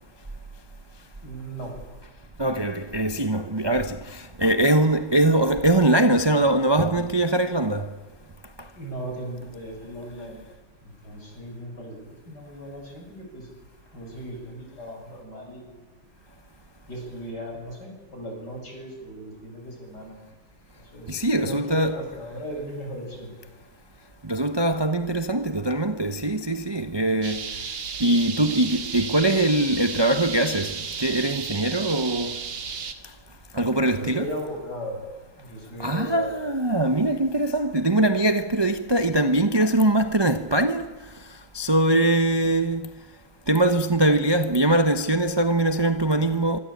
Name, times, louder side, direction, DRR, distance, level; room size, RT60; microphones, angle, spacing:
voice 1, 1.2-1.7 8.8-10.4 10.8-13.5 13.9-15.7 16.9-20.2 20.7-23.3 33.9-35.0 35.4-36.4, equal, 50° left, 8.5 m, -37 dB
voice 2, 2.4-7.9 21.1-21.9 24.2-27.5 28.0-32.4 33.5-34.3 35.8-40.9 41.5-42.9 43.5-46.6, right 1 dB, 20° right, 0.7 m, -22 dB
sound 1, 27.2-32.9, right 6 dB, 80° right, 2.8 m, -33 dB
25.5 x 25.0 x 8.7 m
omnidirectional pair, 2.2 m